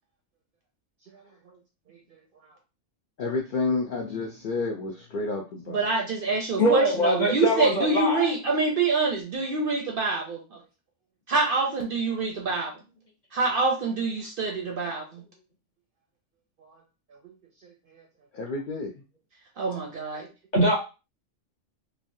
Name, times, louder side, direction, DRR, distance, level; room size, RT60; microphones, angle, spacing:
voice 1, 3.2-5.8 18.3-18.9, left 3 dB, 60° left, 0 dB, 0.5 m, -30 dB
voice 2, 5.7-10.6 11.3-12.7 13.3-15.2 17.2-17.3 19.6-20.3, right 3 dB, 60° right, 1 dB, 0.6 m, -26 dB
voice 3, 6.6-8.3 20.5-20.8, equal, 40° left, -1 dB, 0.9 m, -23 dB
3.1 x 2.3 x 2.6 m, 0.31 s
omnidirectional pair, 1.3 m